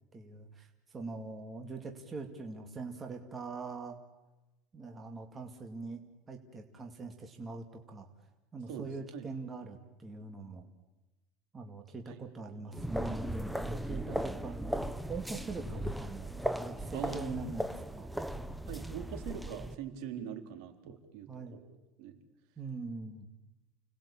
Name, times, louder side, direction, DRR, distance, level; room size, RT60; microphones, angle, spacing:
voice 1, 0.1-4.0 4.7-8.1 8.5-10.7 11.5-14.8 15.1-18.1 20.8-20.9 21.3-21.6 22.6-23.3, right 3 dB, 15° right, 3 dB, 2.3 m, -43 dB
voice 2, 8.7-9.3 16.9-17.5 18.7-22.2, right 8 dB, 65° right, 6 dB, 3.9 m, -43 dB
sound 1, 12.7-19.7, right 1 dB, ahead, 0.8 m, -37 dB
30.0 x 20.0 x 8.7 m, 1.0 s
cardioid pair, 160°, 0 cm